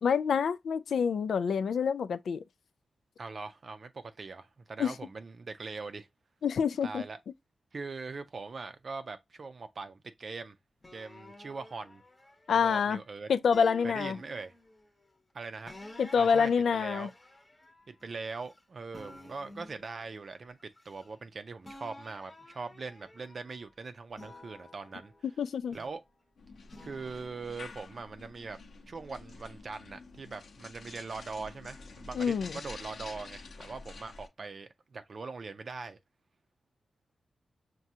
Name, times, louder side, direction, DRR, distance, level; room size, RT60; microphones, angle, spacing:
voice 1, 0.0-2.4 4.8-4.9 6.4-7.0 12.5-13.0 13.3-14.2 16.0-17.1 25.4-25.8 32.1-32.6, left 6 dB, 85° left, 0.3 m, -27 dB
voice 2, 3.2-6.1 6.8-7.2 7.7-10.6 10.9-12.0 12.5-13.3 13.8-14.5 15.3-15.8 16.2-17.1 17.9-25.1 25.7-26.0 26.8-28.6 28.9-36.0, right 4 dB, 50° right, 0.5 m, -41 dB
sound 1, 10.8-13.0 13.5-14.9 15.7-18.6 18.9-21.3 21.6-23.6 24.1-26.1 26.7-27.8, left 1 dB, 20° left, 0.9 m, -52 dB
sound 2, 26.4-34.3, left 3 dB, 70° left, 0.8 m, -48 dB
6.0 x 2.2 x 2.7 m
wide cardioid pair, 110°, 0 cm